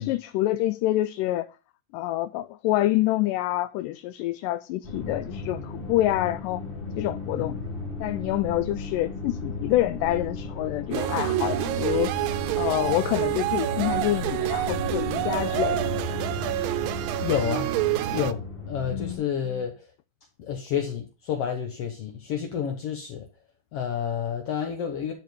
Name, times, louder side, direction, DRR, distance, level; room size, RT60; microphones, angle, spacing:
voice 1, 0.0-1.5 1.9-6.6 7.0-7.6 8.0-12.2 12.6-16.2 18.9-19.2, left 15 dB, 80° left, 2.0 m, -27 dB
sound 1, 4.8-19.1, left 3 dB, 40° left, 0.7 m, -35 dB
voice 2, 7.4-7.7 17.2-17.7 18.1-19.7 20.4-23.3 23.7-25.1, left 8 dB, 65° left, 1.5 m, -29 dB
sound 2, 10.9-18.3, right 14 dB, 90° right, 2.5 m, -27 dB
11.5 x 4.7 x 5.3 m
omnidirectional pair, 4.1 m